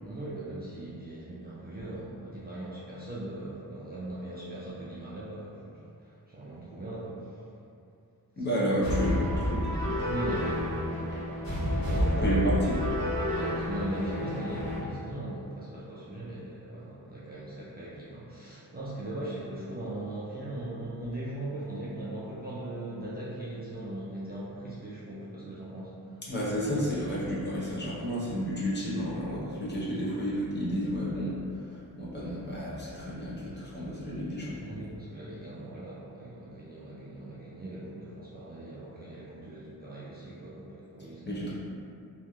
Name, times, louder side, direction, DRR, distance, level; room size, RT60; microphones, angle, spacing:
voice 1, 0.0-7.4 8.4-8.7 10.0-12.3 13.3-26.2 34.6-41.5, right 1 dB, 30° right, -9 dB, 0.3 m, -39 dB
voice 2, 8.4-10.1 12.2-12.8 26.3-31.4 31.7-34.8 41.3-41.5, equal, 30° left, -8 dB, 0.6 m, -31 dB
sound 1, 8.8-14.8, left 1 dB, 50° left, 1.3 m, -30 dB
3.0 x 2.5 x 2.3 m, 2.5 s
wide cardioid pair, 170°, 36 cm